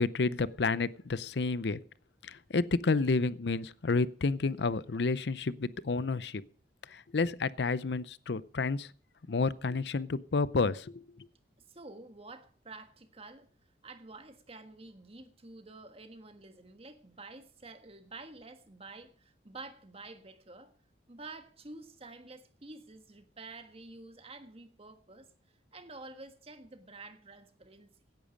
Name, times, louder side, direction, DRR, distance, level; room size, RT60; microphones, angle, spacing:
voice 1, 0.0-1.8 2.2-6.4 6.9-8.9 9.3-11.0, left 3 dB, 70° left, 0.6 m, -30 dB
voice 2, 11.7-13.5 13.8-20.7 21.1-25.3 25.7-27.9, right 3 dB, 35° right, 1.5 m, -49 dB
17.0 x 10.5 x 5.2 m
head